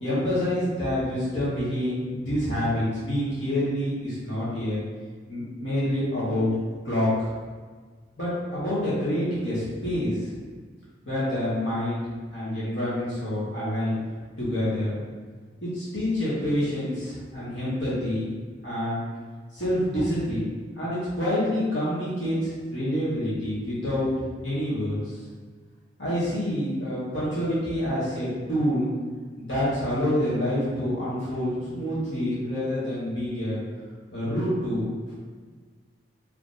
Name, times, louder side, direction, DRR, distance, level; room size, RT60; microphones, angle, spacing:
voice 1, 0.0-4.8 5.3-6.5 6.8-7.3 8.2-10.3 11.0-14.0 14.4-15.0 15.6-18.3 18.6-19.0 19.5-20.5 20.8-24.1 24.4-25.2 26.0-28.9 29.4-33.6 34.1-34.8 35.1-35.2, left 1 dB, 80° left, -10 dB, 1.4 m, -27 dB
3.9 x 3.2 x 2.5 m, 1.5 s
head